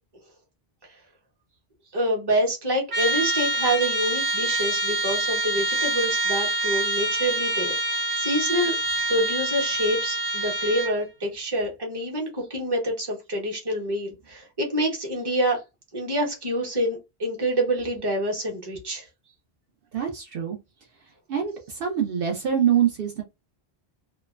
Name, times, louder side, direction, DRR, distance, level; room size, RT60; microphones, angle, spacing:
voice 1, 1.9-8.7 9.1-15.6 15.9-19.1, right 1 dB, 25° right, 0.8 m, -27 dB
Trumpet, 2.9-11.0, right 1 dB, 85° right, 1.1 m, -26 dB
voice 2, 19.9-20.6 21.3-23.2, right 9 dB, 65° right, 0.7 m, -24 dB
2.9 x 2.2 x 2.3 m
omnidirectional pair, 1.1 m